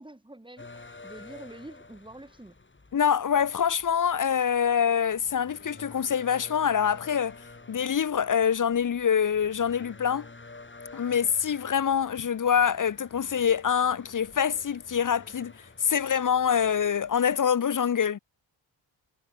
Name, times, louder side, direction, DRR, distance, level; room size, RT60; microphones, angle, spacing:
voice 1, 0.0-2.6, right 1 dB, 10° right, 4.5 m, -46 dB
sound 1, 0.6-17.4, left 3 dB, 25° left, 5.4 m, -50 dB
voice 2, 2.9-7.4 7.7-10.3 10.9-18.2, left 8 dB, 45° left, 0.7 m, -25 dB
wide cardioid pair, 165°, 46 cm